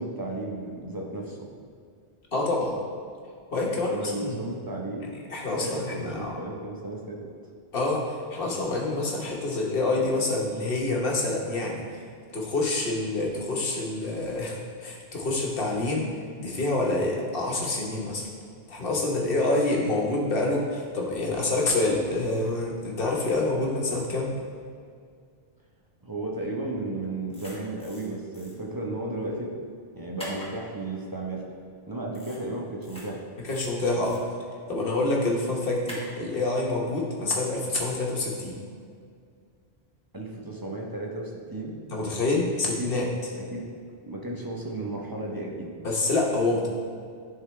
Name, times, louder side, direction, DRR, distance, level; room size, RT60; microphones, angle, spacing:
voice 1, 0.0-1.5 3.7-5.1 5.6-7.3 26.0-29.5 29.9-31.4 31.9-33.2 40.1-41.8 42.8-42.9 43.4-43.7 44.0-45.7, right 2 dB, 20° right, -2 dB, 0.8 m, -34 dB
voice 2, 2.3-2.8 3.5-4.4 5.3-6.3 7.7-12.0 12.3-16.1 16.4-18.3 18.7-24.4 33.5-34.2 34.7-38.6 41.9-43.1 45.8-46.7, left 2 dB, 65° left, -2 dB, 1.3 m, -27 dB
sound 1, 27.3-28.1 28.3-28.5 30.2-30.5 32.1-32.4 32.8-33.0 33.5-34.2 35.9-36.1, equal, 5° left, 1.3 m, -42 dB
10.5 x 3.9 x 3.3 m, 2.2 s
omnidirectional pair, 1.1 m